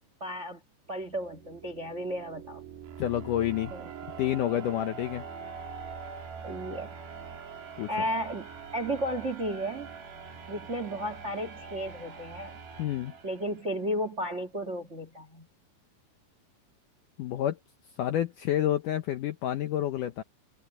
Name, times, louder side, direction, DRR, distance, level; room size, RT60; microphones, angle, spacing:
voice 1, 0.2-0.6 0.9-2.6 3.7-3.9 6.4-7.0 7.9-8.5 8.7-9.9 10.5-12.6 13.2-15.5, equal, 65° right, 0.7 m, -33 dB
sound 1, 1.0-13.9, right 6 dB, 85° right, 5.5 m, -44 dB
voice 2, 3.0-3.7 4.2-5.3 7.8-7.9 12.8-13.1 17.2-17.6 18.0-20.2, left 12 dB, 80° left, 1.9 m, -29 dB
omnidirectional pair, 4.7 m